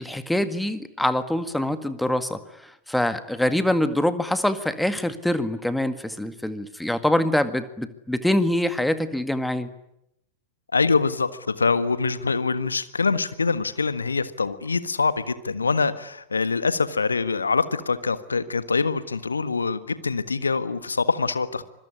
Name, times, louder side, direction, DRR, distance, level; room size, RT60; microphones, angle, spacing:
voice 1, 0.0-2.4 2.9-9.7, left 1 dB, 5° left, 11 dB, 1.9 m, -24 dB
voice 2, 10.7-21.6, left 4 dB, 75° left, 13 dB, 1.5 m, -24 dB
25.5 x 22.0 x 9.9 m, 0.82 s
figure-of-eight pair, 90°, 0 cm